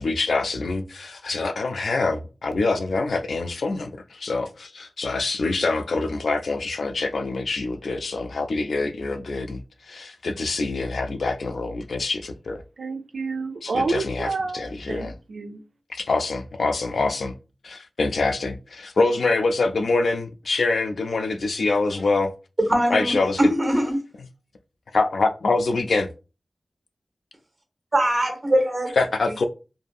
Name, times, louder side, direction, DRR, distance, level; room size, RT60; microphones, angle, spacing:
voice 1, 0.0-12.6 13.6-15.1 15.9-17.3 17.6-22.3 22.9-23.4 24.9-26.1 29.0-29.4, left 3 dB, 85° left, 0.3 m, -25 dB
voice 2, 12.8-15.6, right 3 dB, 80° right, 0.4 m, -29 dB
voice 3, 22.7-24.0 27.9-29.0, right 1 dB, 30° right, 0.9 m, -22 dB
2.6 x 2.6 x 2.3 m
wide cardioid pair, 100°, 0 cm